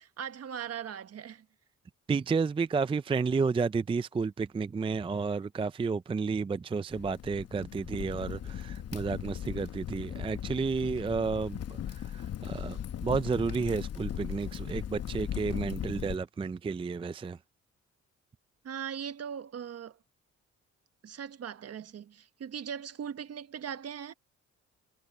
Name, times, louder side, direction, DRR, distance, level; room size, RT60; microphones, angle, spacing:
voice 1, 0.0-1.4 18.6-20.0 21.0-24.1, right 8 dB, 55° right, 1.4 m, -39 dB
voice 2, 2.1-17.4, right 5 dB, 20° right, 0.4 m, -31 dB
Crackle, 6.9-16.2, left 10 dB, 55° left, 1.0 m, -38 dB
cardioid pair, 90°, 30 cm